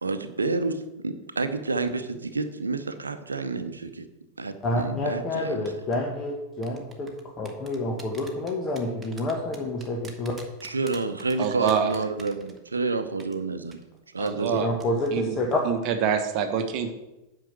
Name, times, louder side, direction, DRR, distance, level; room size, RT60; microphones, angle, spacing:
voice 1, 0.0-4.1 4.4-5.6 10.6-13.8 14.1-14.6, right 3 dB, 75° right, 9 dB, 0.7 m, -29 dB
voice 2, 4.6-7.1 7.4-10.3 14.5-15.6, left 1 dB, 25° left, 0 dB, 1.4 m, -28 dB
sound 1, 5.7-6.0 6.6-12.9 13.2-13.3 13.7-13.8 14.3-14.5 14.8-15.1 15.4-15.6, right 3 dB, 10° right, 1.5 m, -46 dB
voice 3, 11.4-11.9 14.2-14.7 15.1-15.3 15.6-16.9, right 7 dB, 40° right, 6 dB, 1.1 m, -26 dB
9.2 x 5.7 x 6.6 m, 0.99 s
figure-of-eight pair, 90°, 0 cm